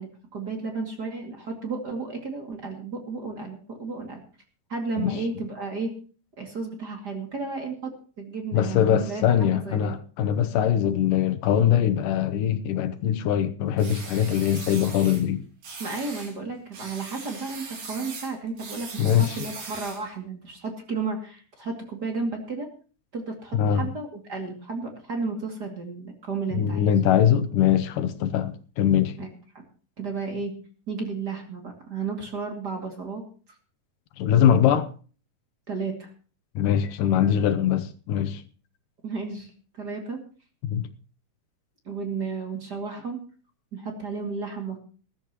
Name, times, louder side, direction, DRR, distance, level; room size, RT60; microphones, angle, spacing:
voice 1, 0.0-4.2 4.7-5.9 6.4-7.9 8.2-9.2 9.6-9.9 15.8-22.7 23.1-26.9 29.2-29.3 30.0-30.5 30.9-33.2 35.7-36.1 39.0-40.2 41.8-43.2 43.7-44.8, right 4 dB, 35° right, 2.6 m, -33 dB
voice 2, 8.5-15.5 19.0-19.4 23.5-23.9 26.5-29.2 34.2-34.9 36.6-38.4 40.6-40.9, left 9 dB, 80° left, 2.5 m, -22 dB
sound 1, 13.8-15.2 15.6-16.3 16.7-20.1, right 4 dB, 75° right, 5.0 m, -40 dB
21.0 x 12.0 x 3.0 m
omnidirectional pair, 3.8 m